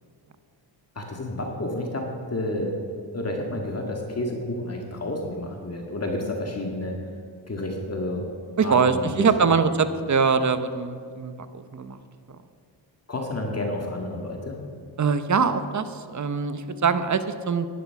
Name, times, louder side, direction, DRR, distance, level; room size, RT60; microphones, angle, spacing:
voice 1, 1.0-2.8 3.1-7.0 7.5-8.2 8.6-9.1 13.1-14.6, left 1 dB, 30° left, 1 dB, 2.0 m, -30 dB
voice 2, 8.6-12.0 15.0-17.7, right 5 dB, 40° right, 11 dB, 0.9 m, -23 dB
11.5 x 10.5 x 5.8 m, 2.1 s
cardioid pair, 80°, 46 cm